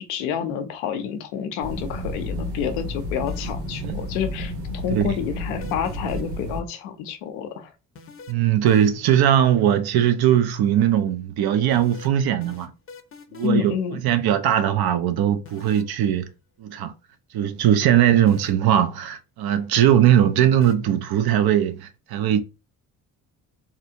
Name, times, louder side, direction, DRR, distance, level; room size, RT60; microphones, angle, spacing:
voice 1, 0.0-7.7 13.4-14.0, left 8 dB, 80° left, 0.6 m, -29 dB
sound 1, 1.6-6.6, left 1 dB, 90° right, 0.9 m, -31 dB
sound 2, 3.3-3.8 5.6-6.4 8.0-9.2 11.7-13.7 15.5-16.0 18.3-18.8 20.6-20.7, left 5 dB, 30° left, 0.7 m, -44 dB
voice 2, 8.3-12.7 13.3-13.7 14.0-16.3 16.6-16.9 17.3-22.4, right 10 dB, 55° right, 0.6 m, -20 dB
2.8 x 2.4 x 2.7 m
hypercardioid pair, 50°, 45 cm